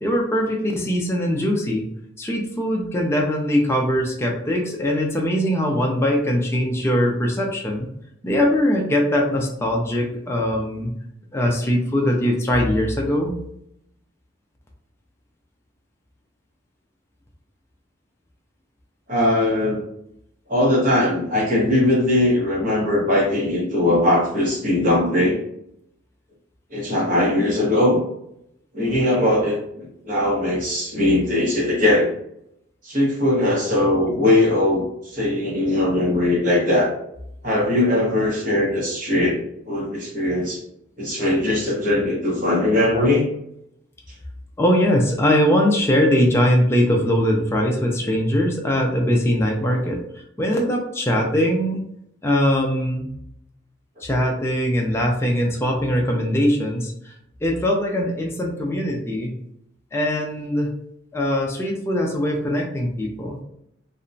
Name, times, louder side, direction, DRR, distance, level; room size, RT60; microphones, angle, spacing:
voice 1, 0.0-1.8 2.2-7.9 8.2-10.9 11.3-13.4 44.6-50.0 50.4-51.8 52.2-53.1 54.0-57.1 57.4-59.3 59.9-60.7 61.1-63.4, equal, 15° left, 0 dB, 0.4 m, -21 dB
voice 2, 19.1-19.8 20.5-25.4 26.7-28.0 28.7-32.1 32.8-36.9 37.4-39.4 39.7-40.6 41.0-43.2, left 1 dB, 40° right, -4 dB, 1.0 m, -20 dB
2.8 x 2.2 x 2.5 m, 0.75 s
head